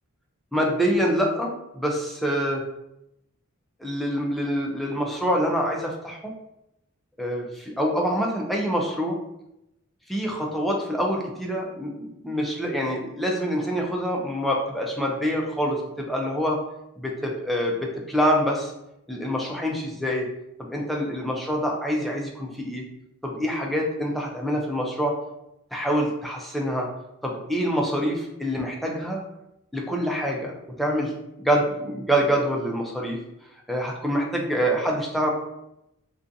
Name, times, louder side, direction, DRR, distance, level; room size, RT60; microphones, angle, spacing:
voice 1, 0.5-2.6 3.8-6.3 7.2-9.2 10.1-16.6 17.0-18.7 19.1-20.3 20.6-22.8 23.2-25.2 25.7-26.9 27.2-29.2 29.7-30.5 30.8-31.1 31.4-33.2 33.7-35.3, equal, ahead, -1 dB, 0.3 m, -26 dB
2.5 x 2.3 x 2.5 m, 0.84 s
head